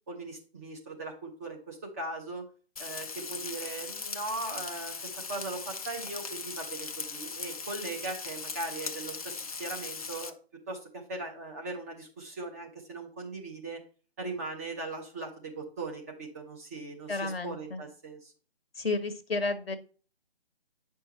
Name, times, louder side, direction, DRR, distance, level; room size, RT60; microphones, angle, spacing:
voice 1, 0.1-2.4 2.8-10.3 10.7-13.8 14.2-18.3, right 2 dB, 15° right, 0 dB, 0.8 m, -39 dB
Frying (food), 2.8-10.3, left 4 dB, 35° left, 0.5 m, -39 dB
voice 2, 17.1-17.8 18.8-19.8, left 3 dB, 70° left, 10 dB, 1.1 m, -32 dB
9.0 x 5.6 x 3.0 m, 0.38 s
figure-of-eight pair, 145°, 32 cm